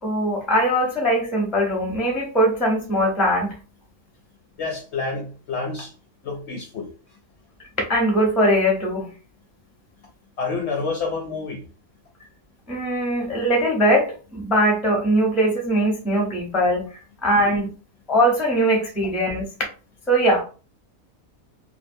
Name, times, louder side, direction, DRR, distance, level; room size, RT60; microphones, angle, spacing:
voice 1, 0.0-3.5 7.9-9.1 12.7-16.9 17.2-17.7 18.1-19.5 20.1-20.4, equal, ahead, 0 dB, 0.4 m, -21 dB
voice 2, 4.6-5.9 6.2-6.9 10.4-11.7, left 4 dB, 65° left, 1 dB, 0.7 m, -28 dB
2.5 x 2.5 x 2.6 m, 0.36 s
omnidirectional pair, 1.5 m